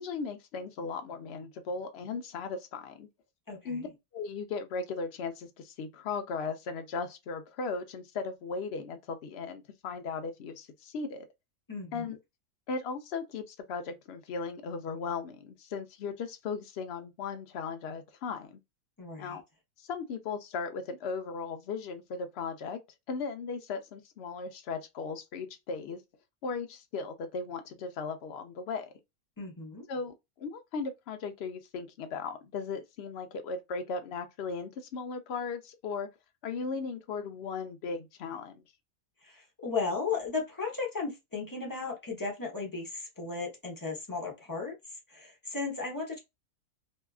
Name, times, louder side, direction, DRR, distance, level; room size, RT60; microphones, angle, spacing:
voice 1, 0.0-3.1 3.6-3.9 4.1-11.3 11.9-12.2 12.7-18.6 19.2-19.4 19.8-22.8 23.1-26.0 26.4-28.9 29.9-36.1 36.4-38.6, left 4 dB, 70° left, 0.6 m, -37 dB
voice 2, 3.5-3.9 11.7-12.1 19.0-19.4 29.4-29.8 39.2-44.7 45.1-46.2, left 4 dB, 25° left, 0.5 m, -35 dB
2.7 x 2.3 x 2.3 m
omnidirectional pair, 1.6 m